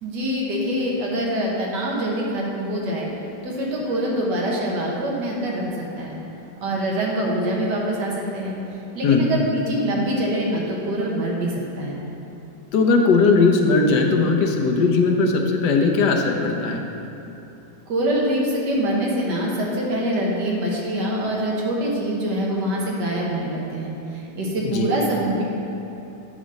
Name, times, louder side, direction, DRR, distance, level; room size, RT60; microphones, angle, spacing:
voice 1, 0.0-3.1 3.4-5.7 6.0-6.2 6.6-8.5 8.9-12.0 17.9-25.4, right 1 dB, 80° right, -3 dB, 1.9 m, -24 dB
voice 2, 12.7-16.8 24.7-24.9, left 4 dB, 80° left, 2 dB, 1.3 m, -18 dB
9.0 x 4.1 x 6.4 m, 3.0 s
omnidirectional pair, 1.8 m